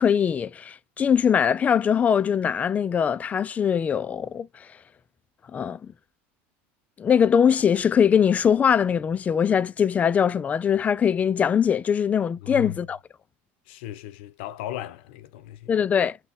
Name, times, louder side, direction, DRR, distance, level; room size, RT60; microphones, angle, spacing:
voice 1, 0.0-4.7 5.5-5.9 7.0-13.0 15.7-16.2, left 7 dB, 25° left, 0.3 m, -22 dB
voice 2, 12.4-12.8 13.7-15.7, left 13 dB, 80° left, 0.7 m, -36 dB
6.0 x 2.2 x 3.6 m
supercardioid pair, 125°, 6 cm